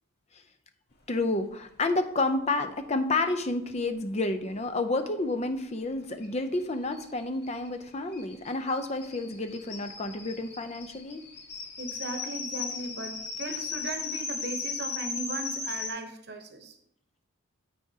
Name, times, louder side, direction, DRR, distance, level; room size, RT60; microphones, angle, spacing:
voice 1, 1.1-11.3, left 2 dB, 30° left, 8 dB, 0.5 m, -30 dB
sound 1, 6.2-6.3 6.5-6.6 6.9-15.9, left 4 dB, 50° left, 1.5 m, -37 dB
voice 2, 11.8-16.7, right 2 dB, 50° right, 6 dB, 0.9 m, -37 dB
13.5 x 4.8 x 2.8 m, 0.75 s
head